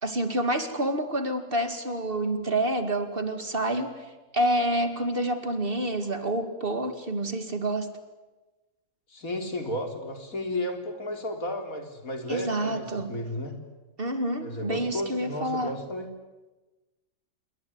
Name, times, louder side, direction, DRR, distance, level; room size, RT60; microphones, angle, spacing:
voice 1, 0.0-7.9 12.3-13.1 14.0-15.7, right 1 dB, 40° right, 8 dB, 2.4 m, -28 dB
voice 2, 9.1-13.5 14.4-16.1, left 1 dB, 80° left, 5 dB, 4.2 m, -33 dB
27.5 x 22.0 x 9.6 m, 1.1 s
omnidirectional pair, 1.4 m